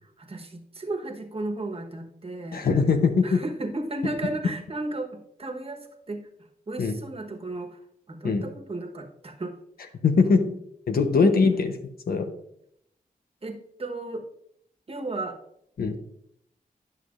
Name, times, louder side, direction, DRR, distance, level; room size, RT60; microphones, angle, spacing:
voice 1, 0.2-2.7 3.2-6.3 6.7-7.8 8.1-9.5 9.9-10.6 13.4-14.2 14.9-15.4, right 2 dB, 40° right, 4 dB, 1.2 m, -34 dB
voice 2, 2.5-3.4 6.8-6.9 8.2-8.4 10.0-10.5 10.9-11.7 12.1-12.3 15.8-16.0, left 4 dB, 85° left, 7 dB, 0.9 m, -21 dB
10.5 x 6.5 x 2.5 m, 0.72 s
wide cardioid pair, 75°, 15 cm